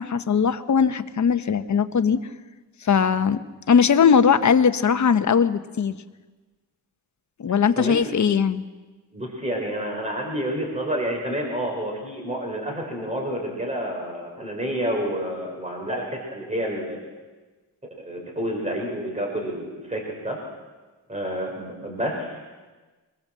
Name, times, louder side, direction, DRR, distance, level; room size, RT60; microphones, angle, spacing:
voice 1, 0.0-2.2 2.8-3.4 3.7-5.9 7.4-8.6, left 6 dB, 45° left, 10 dB, 1.0 m, -19 dB
voice 2, 7.8-8.2 9.1-17.0 18.0-20.4 21.1-22.4, right 1 dB, 15° right, 1 dB, 4.3 m, -29 dB
24.0 x 21.0 x 7.5 m, 1.3 s
wide cardioid pair, 175°, 40 cm